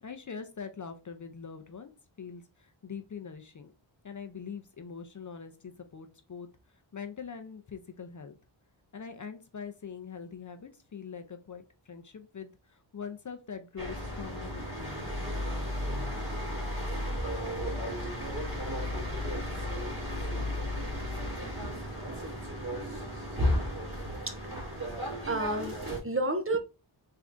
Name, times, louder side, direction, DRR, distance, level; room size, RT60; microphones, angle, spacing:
voice 1, 0.0-1.9 2.2-3.7 4.0-6.5 6.9-8.4 8.9-15.1, left 6 dB, 40° left, 0.5 m, -43 dB
sound 1, 13.8-26.0, left 1 dB, 45° right, 1.9 m, -34 dB
voice 2, 24.3-24.9 25.2-26.6, right 2 dB, 30° right, 0.5 m, -32 dB
3.6 x 3.3 x 2.5 m
wide cardioid pair, 90°, 47 cm